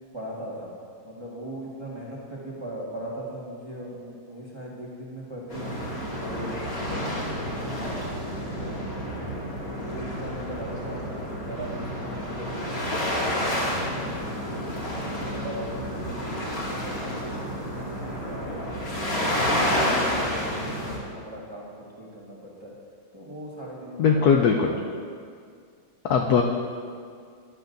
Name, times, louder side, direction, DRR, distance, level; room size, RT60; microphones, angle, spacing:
voice 1, 0.1-0.7 1.0-9.3 9.7-19.3 19.6-22.7 23.1-25.0, right 1 dB, 15° right, -6 dB, 1.4 m, -40 dB
sound 1, 5.5-21.0, equal, 45° left, 2.6 m, -30 dB
voice 2, 24.0-24.7 26.1-26.4, left 6 dB, 70° left, 2 dB, 0.9 m, -19 dB
12.5 x 11.5 x 2.6 m, 2.2 s
omnidirectional pair, 2.2 m